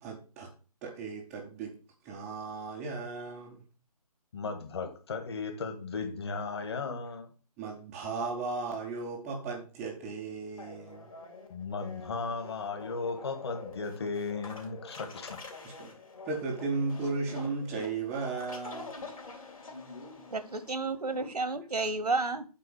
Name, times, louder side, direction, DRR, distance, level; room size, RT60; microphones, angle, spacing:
voice 1, 0.0-0.5 0.8-1.7 2.0-3.6 7.6-11.1 15.6-16.0 16.2-18.9, right 4 dB, 5° right, 0.4 m, -35 dB
voice 2, 4.3-7.3 11.5-15.7, left 4 dB, 40° left, 1.6 m, -36 dB
sound 1, 10.6-21.4, left 3 dB, 60° left, 3.0 m, -47 dB
voice 3, 20.3-22.5, right 3 dB, 75° right, 1.0 m, -31 dB
8.6 x 4.0 x 6.5 m
figure-of-eight pair, 145°, 20 cm